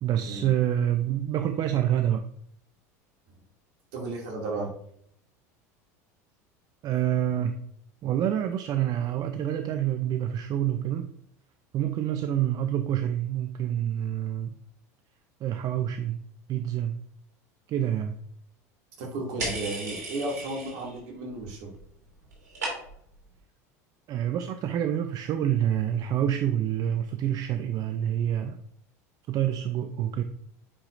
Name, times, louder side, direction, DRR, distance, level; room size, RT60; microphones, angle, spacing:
voice 1, 0.0-2.2 6.8-7.6 8.0-11.1 11.7-14.6 15.4-16.2 16.5-17.0 17.7-18.1 24.1-28.6 29.3-30.2, right 10 dB, 45° right, 9 dB, 0.5 m, -27 dB
voice 2, 3.9-4.7 19.0-21.7, right 2 dB, 65° right, -1 dB, 2.4 m, -34 dB
sound 1, 19.4-21.0 21.3-21.8 22.1-23.2, right 2 dB, 90° right, 2.4 m, -35 dB
8.7 x 4.9 x 2.6 m, 0.69 s
hypercardioid pair, 90°, 9 cm